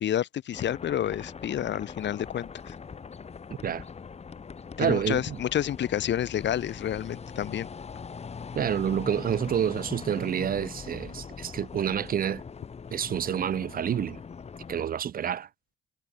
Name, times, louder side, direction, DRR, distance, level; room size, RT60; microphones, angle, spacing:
voice 1, 0.0-2.7 4.8-7.7, left 10 dB, 65° left, 1.7 m, -29 dB
sound 1, 0.5-14.8, left 6 dB, 35° left, 1.1 m, -42 dB
voice 2, 4.8-5.4 8.5-12.4 12.9-14.2 14.7-15.5, right 9 dB, 45° right, 0.6 m, -28 dB
cardioid pair, 90°, 20 cm